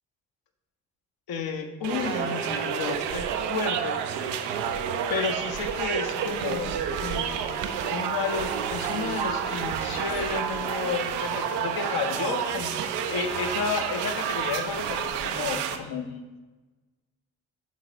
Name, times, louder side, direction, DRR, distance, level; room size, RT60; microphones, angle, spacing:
voice 1, 1.3-4.2 5.1-12.8 13.1-16.2, left 5 dB, 55° left, 5 dB, 1.0 m, -32 dB
sound 1, 1.8-15.8, right 8 dB, 65° right, 0.6 m, -29 dB
8.4 x 4.0 x 3.0 m, 1.2 s
hypercardioid pair, 40°, 44 cm